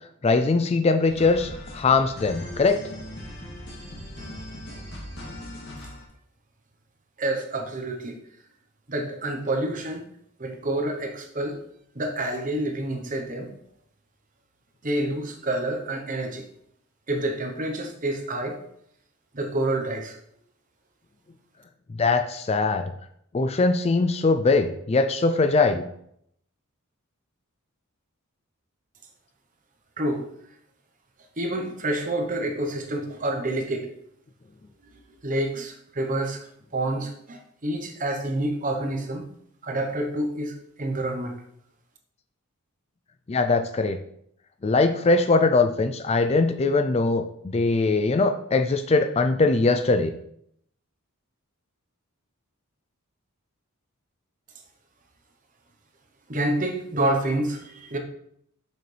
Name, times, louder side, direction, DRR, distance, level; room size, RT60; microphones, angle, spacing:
voice 1, 0.2-2.8 22.0-22.8 23.3-25.8 43.3-44.0 44.6-47.2 47.5-50.1, left 3 dB, 30° left, 8 dB, 0.4 m, -21 dB
sound 1, 1.0-6.1, left 1 dB, 50° left, 2.4 m, -39 dB
voice 2, 7.2-8.2 8.9-10.0 10.4-11.6 11.9-13.5 14.8-16.4 17.1-18.6 19.3-20.2 30.0-30.2 31.4-33.9 35.2-36.4 36.7-39.3 39.6-41.4 56.3-58.0, right 1 dB, 35° right, 4 dB, 1.0 m, -28 dB
6.7 x 6.6 x 3.3 m, 0.71 s
head